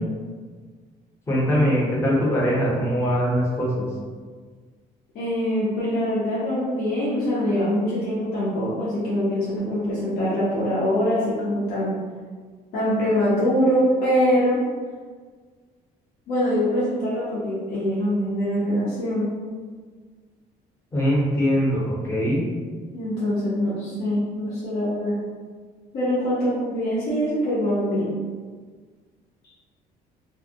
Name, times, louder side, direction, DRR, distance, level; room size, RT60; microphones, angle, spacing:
voice 1, 1.3-3.9 20.9-22.4, equal, 15° left, -6 dB, 0.7 m, -22 dB
voice 2, 5.1-11.9 12.7-14.6 16.3-19.3 22.9-25.1 25.9-28.1, equal, 65° left, -9 dB, 0.7 m, -23 dB
2.3 x 2.0 x 2.7 m, 1.5 s
cardioid pair, 110°, 17 cm